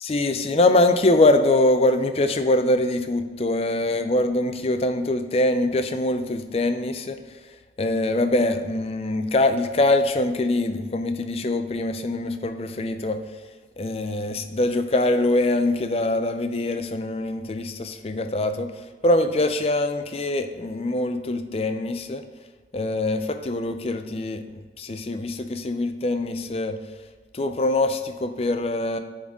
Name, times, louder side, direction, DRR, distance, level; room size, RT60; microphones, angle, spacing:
voice 1, 0.0-7.2 7.8-13.2 13.8-18.7 19.0-22.2 22.7-26.8 27.3-29.0, left 2 dB, 35° left, 8 dB, 0.4 m, -23 dB
10.5 x 3.9 x 3.7 m, 1.4 s
head